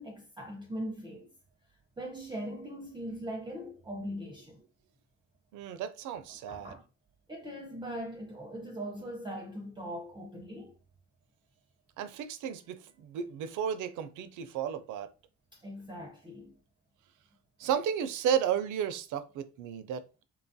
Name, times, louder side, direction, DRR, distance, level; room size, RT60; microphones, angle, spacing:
voice 1, 0.0-1.3 2.0-4.6 6.5-6.8 7.3-10.7 15.5-16.6, equal, 15° right, 0.5 m, -40 dB
voice 2, 5.5-6.8 12.0-15.1 17.6-20.2, right 8 dB, 80° right, 0.4 m, -33 dB
2.9 x 2.3 x 2.6 m
cardioid pair, 90°, 30 cm